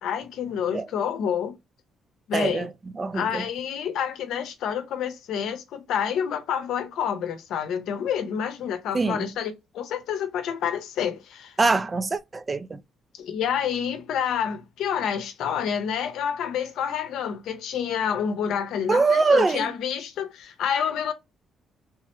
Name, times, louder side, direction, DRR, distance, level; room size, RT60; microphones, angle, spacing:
voice 1, 0.0-1.5 2.3-2.7 3.1-11.5 13.1-21.1, left 8 dB, 80° left, 0.7 m, -28 dB
voice 2, 2.3-2.7 3.0-3.4 8.9-9.3 11.6-12.8 18.9-19.7, right 3 dB, 30° right, 0.3 m, -23 dB
3.4 x 2.1 x 2.8 m
cardioid pair, 90°, 0 cm